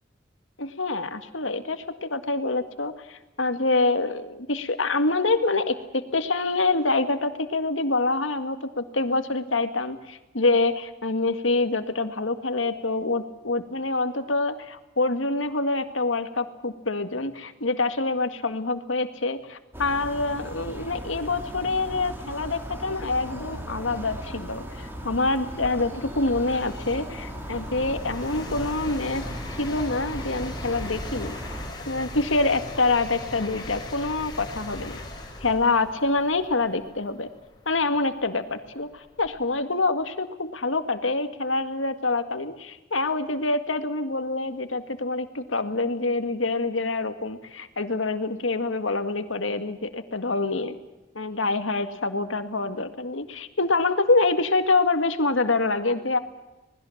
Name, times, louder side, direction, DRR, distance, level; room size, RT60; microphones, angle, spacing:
voice 1, 0.6-29.3 29.6-31.3 31.9-35.0 35.4-37.3 37.7-50.8 51.2-56.2, left 3 dB, 85° left, 9 dB, 2.0 m, -26 dB
sound 1, 19.7-31.7, equal, 10° right, 3.5 m, -37 dB
sound 2, 24.8-39.5, left 1 dB, 20° left, 4.9 m, -40 dB
26.0 x 20.0 x 7.3 m, 1.0 s
head